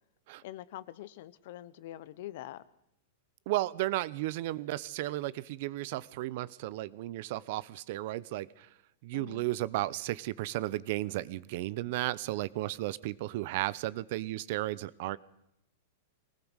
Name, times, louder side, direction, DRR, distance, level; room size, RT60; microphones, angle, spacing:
voice 1, 0.4-2.6 9.1-9.4, left 14 dB, 60° left, 18 dB, 1.1 m, -44 dB
voice 2, 3.5-8.7 9.0-15.2, right 16 dB, 50° right, 20 dB, 0.8 m, -34 dB
22.5 x 19.0 x 6.4 m, 0.82 s
supercardioid pair, 155°, 0 cm